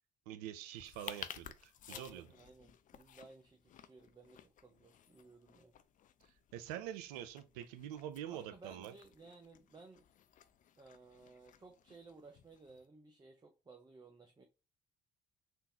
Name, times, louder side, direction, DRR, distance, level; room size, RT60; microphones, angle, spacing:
voice 1, 0.3-2.3 6.5-8.9, right 11 dB, 80° right, 0.4 m, -45 dB
eating aple, 0.7-12.8, left 10 dB, 45° left, 0.4 m, -55 dB
voice 2, 1.9-5.7 8.3-10.1 10.8-14.4, right 3 dB, 20° right, 0.6 m, -58 dB
3.6 x 2.5 x 2.8 m
hypercardioid pair, 50°, 20 cm